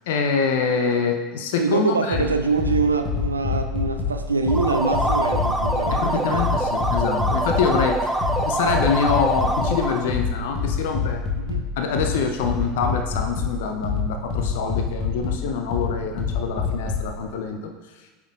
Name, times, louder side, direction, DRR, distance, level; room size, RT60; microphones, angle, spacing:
voice 1, 0.1-2.3 5.9-11.2 11.8-17.7, left 5 dB, 60° left, 4 dB, 0.6 m, -25 dB
voice 2, 1.6-6.4 11.3-11.6, right 4 dB, 80° right, 6 dB, 0.4 m, -24 dB
sound 1, 2.1-17.1, left 5 dB, 45° left, 1.3 m, -27 dB
sound 2, 4.4-10.1, right 1 dB, 5° right, 0.6 m, -25 dB
8.7 x 5.9 x 2.4 m, 1.3 s
figure-of-eight pair, 75°, 0 cm